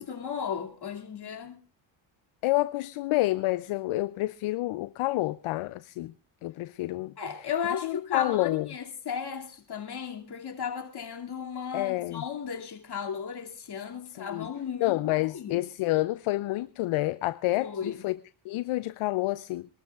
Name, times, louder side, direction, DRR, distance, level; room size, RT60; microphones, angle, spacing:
voice 1, 0.0-1.6 7.2-15.7 17.6-18.0, left 7 dB, 50° left, 2.5 m, -35 dB
voice 2, 2.4-6.1 6.4-7.5 7.8-8.7 11.7-12.2 14.2-14.5 14.8-18.1 18.5-19.7, left 18 dB, 75° left, 0.6 m, -29 dB
26.0 x 13.0 x 2.4 m
cardioid pair, 70°, 49 cm